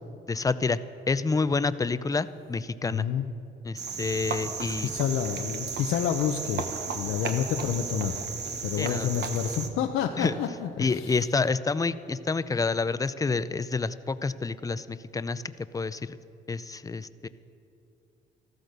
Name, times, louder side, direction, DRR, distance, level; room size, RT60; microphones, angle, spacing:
voice 1, 0.3-0.8 1.1-3.1 3.6-4.9 8.8-9.1 10.2-10.3 10.8-16.2 16.5-17.3, left 4 dB, 15° left, 14 dB, 0.5 m, -28 dB
voice 2, 2.8-3.3 4.6-6.7 6.9-8.2 8.6-11.2, left 8 dB, 85° left, 4 dB, 0.8 m, -29 dB
Cricket, 3.8-9.7, right 5 dB, 60° right, 1.4 m, -34 dB
14.0 x 13.0 x 6.7 m, 2.8 s
cardioid pair, 90°, 20 cm